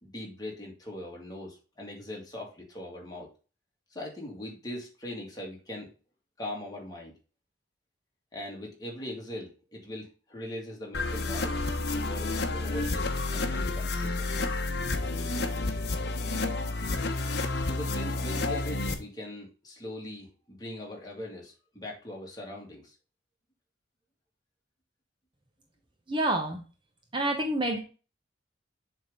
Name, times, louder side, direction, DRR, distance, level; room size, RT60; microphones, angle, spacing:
voice 1, 0.0-3.3 3.9-5.9 6.4-7.1 8.3-11.6 11.9-14.3 17.6-22.9, left 1 dB, 20° left, -1 dB, 2.0 m, -41 dB
sound 1, 10.9-18.9, left 2 dB, 55° left, 0.9 m, -30 dB
voice 2, 26.1-26.6 27.1-27.8, right 1 dB, 25° right, 3 dB, 0.9 m, -28 dB
7.2 x 3.6 x 5.3 m, 0.34 s
head